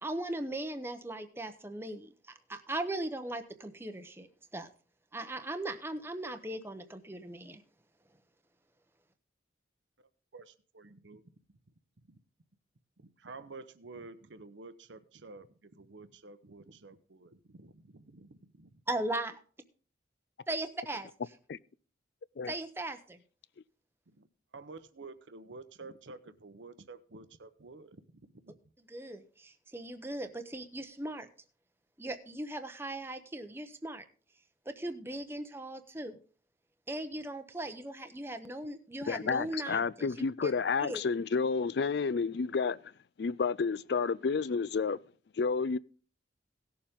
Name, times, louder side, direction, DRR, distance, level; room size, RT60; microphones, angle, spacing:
voice 1, 0.0-4.3 4.5-4.7 5.1-7.6 18.9-19.4 20.5-21.1 22.5-23.2 28.9-31.3 32.0-34.0 34.7-36.2 36.9-40.1 40.4-40.5 40.8-41.0, right 1 dB, 10° right, 0.7 m, -38 dB
voice 2, 10.3-11.2 13.0-17.9 24.1-24.3 24.5-28.5, right 3 dB, 75° right, 0.8 m, -50 dB
voice 3, 39.1-42.8 43.2-45.0 45.4-45.8, left 5 dB, 60° left, 0.4 m, -30 dB
17.5 x 7.0 x 3.6 m
head